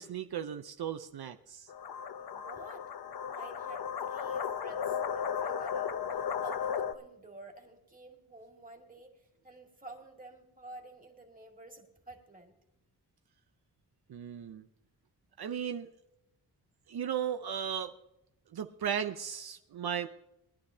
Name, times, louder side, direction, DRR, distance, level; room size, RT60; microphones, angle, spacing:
voice 1, 0.0-1.7 14.1-14.6 15.4-15.9 16.9-17.9 18.5-20.1, right 8 dB, 75° right, 7 dB, 0.7 m, -36 dB
sound 1, 1.7-6.9, left 7 dB, 75° left, 0.8 m, -35 dB
voice 2, 2.2-2.9 3.2-12.5, right 2 dB, 20° right, 1 dB, 2.0 m, -51 dB
21.0 x 11.5 x 2.8 m, 0.86 s
wide cardioid pair, 170°, 38 cm